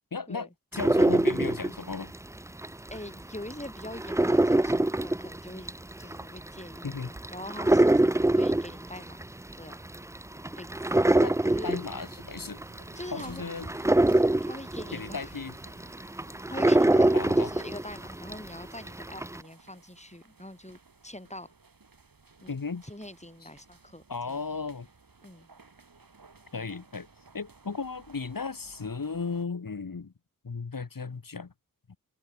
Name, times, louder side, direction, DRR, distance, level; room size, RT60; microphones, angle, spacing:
voice 1, 0.1-2.1 6.8-7.1 11.2-11.4 11.6-12.6 13.1-13.7 14.9-15.5 17.1-17.5 22.5-22.8 24.1-24.9 26.5-27.1 27.3-30.1 30.4-31.5, left 4 dB, 70° left, 1.4 m, -35 dB
sound 1, 0.7-3.0 3.3-18.5 18.9-19.4, right 1 dB, 10° right, 0.4 m, -24 dB
voice 2, 2.9-9.2 9.6-9.8 10.5-11.1 11.4-12.1 12.9-13.4 14.4-15.3 16.5-21.5 22.4-22.6 22.8-24.4 25.2-25.5 26.5-26.7, left 1 dB, 20° left, 4.2 m, -43 dB
sound 2, 11.6-29.5, right 4 dB, 70° right, 2.4 m, -56 dB
wide cardioid pair, 55°, 35 cm